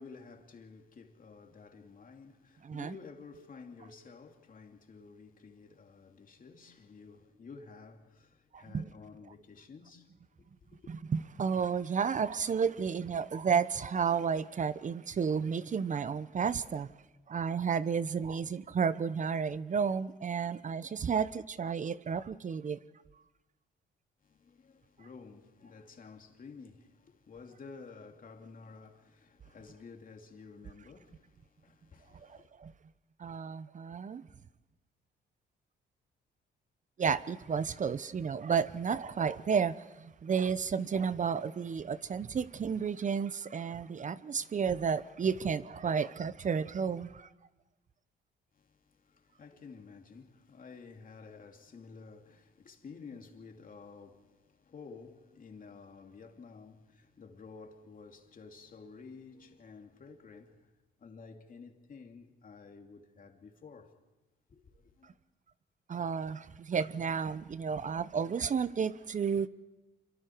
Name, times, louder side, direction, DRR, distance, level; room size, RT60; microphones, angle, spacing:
voice 1, 0.0-10.1 10.8-10.9 24.2-32.5 48.5-60.7 61.0-63.9 64.5-65.1, left 4 dB, 45° left, 2.7 m, -52 dB
voice 2, 2.6-2.9 8.5-8.9 10.9-16.9 17.3-22.8 32.2-32.7 33.2-34.3 37.0-47.3 65.9-69.5, right 6 dB, 40° right, 0.8 m, -32 dB
27.0 x 24.5 x 4.6 m
cardioid pair, 90°, 20 cm